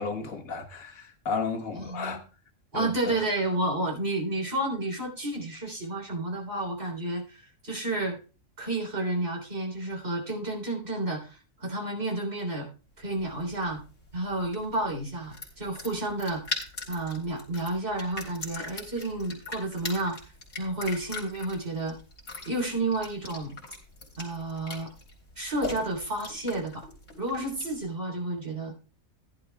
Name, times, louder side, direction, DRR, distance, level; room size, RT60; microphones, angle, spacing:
voice 1, 0.0-2.2 2.7-2.9, left 4 dB, 90° left, 1.7 m, -33 dB
voice 2, 1.7-2.2 2.7-8.2 8.6-12.7 13.0-13.8 14.1-16.4 16.9-20.3 20.6-22.0 22.4-23.6 24.2-24.9 25.4-26.8 27.2-28.7, right 2 dB, 50° right, 3.8 m, -31 dB
sound 1, 13.0-27.9, left 3 dB, 60° left, 3.4 m, -41 dB
14.5 x 11.0 x 2.3 m
omnidirectional pair, 1.4 m